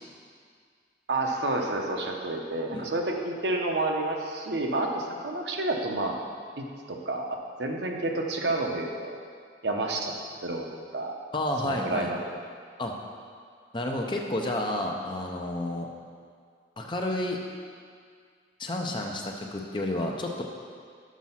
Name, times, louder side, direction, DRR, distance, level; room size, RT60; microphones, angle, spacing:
voice 1, 1.1-6.2 6.6-9.2 9.6-10.1 10.4-10.7 10.9-11.2 11.6-12.3, right 2 dB, 75° right, 1 dB, 0.8 m, -30 dB
voice 2, 11.3-12.1 12.8-12.9 13.7-15.9 16.8-17.4 18.6-20.4, left 1 dB, 25° left, 1 dB, 0.6 m, -30 dB
6.1 x 5.3 x 5.6 m, 2.1 s
head